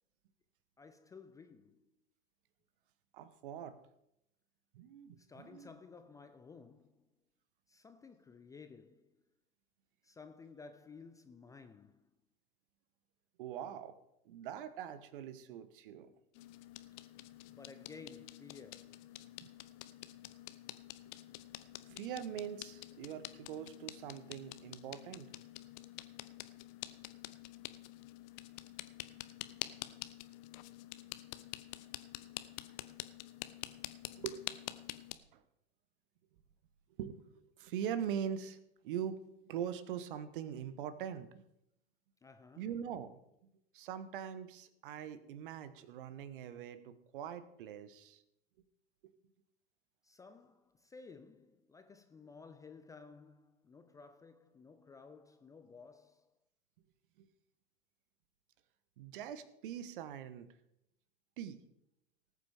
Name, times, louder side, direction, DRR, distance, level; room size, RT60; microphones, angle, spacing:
voice 1, 0.8-1.9 5.2-7.1 7.7-9.2 10.0-12.1 17.5-19.1 42.2-42.7 50.0-56.3, left 4 dB, 10° left, 0.5 m, -55 dB
voice 2, 3.1-3.8 4.7-5.7 13.4-14.0 14.2-16.1 19.4-19.5 21.9-25.3 34.2-34.8 35.3-35.4 37.0-38.6 38.8-41.4 42.6-43.2 43.7-48.2 57.2-57.3 59.0-60.5 61.4-61.6, right 9 dB, 55° right, 1.2 m, -42 dB
sound 1, 16.3-35.1, left 16 dB, 45° left, 0.7 m, -48 dB
19.0 x 8.5 x 3.6 m
figure-of-eight pair, 95°, 31 cm